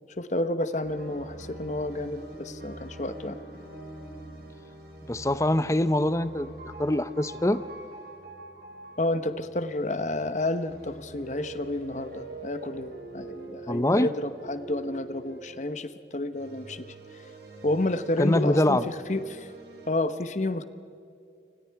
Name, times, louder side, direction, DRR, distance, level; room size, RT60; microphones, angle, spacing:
voice 1, 0.2-3.4 9.0-16.9 17.6-19.5 19.9-20.6, left 1 dB, 40° left, 11 dB, 1.0 m, -30 dB
sound 1, 0.8-19.9, right 2 dB, 60° right, 4.1 m, -45 dB
voice 2, 5.1-6.5 6.8-7.6 13.7-14.1 18.2-18.8, left 1 dB, 15° left, 13 dB, 0.7 m, -24 dB
28.0 x 25.5 x 4.7 m, 2.6 s
head